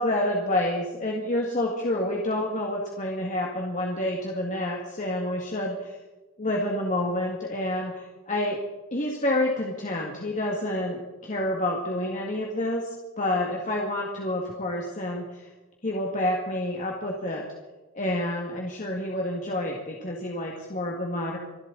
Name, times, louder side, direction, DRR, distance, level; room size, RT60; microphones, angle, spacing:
voice 1, 0.0-6.0 6.4-8.6 8.9-15.5 15.8-17.4 17.9-21.4, left 1 dB, 35° left, -1 dB, 2.0 m, -28 dB
26.5 x 12.0 x 4.1 m, 1.1 s
head